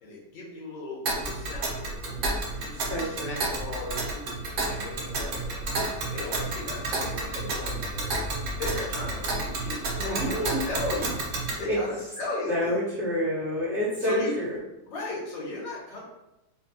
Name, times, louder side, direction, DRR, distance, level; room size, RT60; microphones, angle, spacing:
voice 1, 0.0-8.1 8.6-9.8 10.0-11.2 11.6-12.8 14.0-14.3 14.9-16.0, left 2 dB, 85° left, -5 dB, 1.8 m, -36 dB
Tick, 1.0-11.6, right 2 dB, 60° right, 0.8 m, -31 dB
voice 2, 2.9-3.4 10.0-10.6 11.7-11.8 12.5-14.6, equal, 35° right, -10 dB, 1.8 m, -28 dB
4.3 x 2.4 x 2.8 m, 0.93 s
omnidirectional pair, 2.0 m